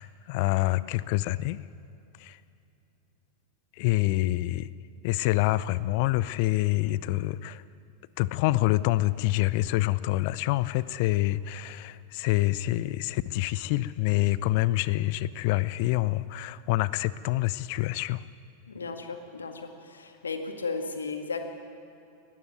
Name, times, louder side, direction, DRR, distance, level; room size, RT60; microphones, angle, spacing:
voice 1, 0.0-1.6 2.2-2.4 3.8-4.7 5.0-7.6 8.2-18.2, left 17 dB, 45° left, 18 dB, 0.5 m, -26 dB
voice 2, 18.7-21.4, left 4 dB, 70° left, 6 dB, 2.0 m, -35 dB
20.0 x 15.0 x 9.4 m, 2.7 s
figure-of-eight pair, 90°, 0 cm